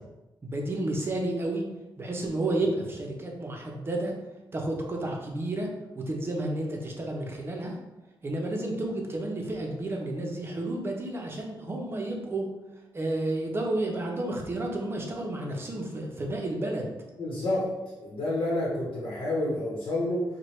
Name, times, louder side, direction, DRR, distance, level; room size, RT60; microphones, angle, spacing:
voice 1, 0.4-1.6 2.0-4.1 4.5-5.7 5.9-7.8 8.2-12.4 12.9-16.9, right 2 dB, 30° right, 0 dB, 0.6 m, -31 dB
voice 2, 17.2-17.6 18.0-20.2, left 1 dB, 70° left, -5 dB, 0.9 m, -29 dB
4.5 x 2.2 x 3.1 m, 1.1 s
wide cardioid pair, 160°, 8 cm